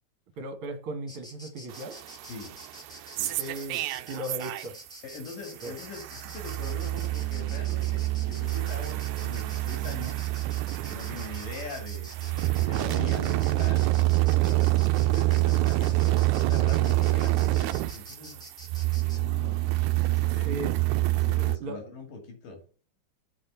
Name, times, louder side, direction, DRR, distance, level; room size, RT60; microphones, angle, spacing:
voice 1, 0.4-2.0 3.4-4.8 5.6-5.7 14.4-14.7 20.5-20.8 21.6-21.8, right 1 dB, 50° right, 2.1 m, -37 dB
Insect, 1.1-19.2, left 1 dB, 5° left, 0.6 m, -48 dB
sound 1, 1.7-4.9 5.2-21.6, right 18 dB, 80° right, 1.8 m, -27 dB
voice 2, 2.3-2.6 3.1-3.4 5.0-10.2 10.8-13.9 15.0-18.4 19.1-20.5 21.2-22.6, left 4 dB, 85° left, 4.2 m, -42 dB
7.9 x 4.4 x 6.8 m
omnidirectional pair, 3.7 m